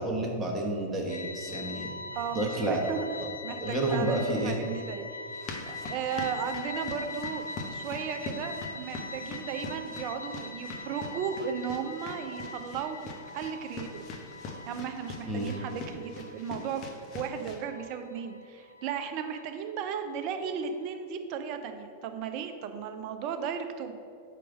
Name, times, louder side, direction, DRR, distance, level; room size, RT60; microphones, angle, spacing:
voice 1, 0.0-1.9 2.3-2.8 3.6-4.6 15.3-15.6, right 1 dB, 15° right, -1 dB, 1.2 m, -30 dB
sound 1, 1.1-21.0, left 3 dB, 75° left, 0.4 m, -43 dB
voice 2, 2.1-3.1 3.4-5.1 5.3-13.0 13.3-14.0 14.7-23.9, right 7 dB, 40° right, 7 dB, 0.5 m, -35 dB
sound 2, 5.3-17.6, left 3 dB, 35° left, 0.9 m, -43 dB
5.0 x 4.5 x 6.1 m, 2.4 s
figure-of-eight pair, 90°, 0 cm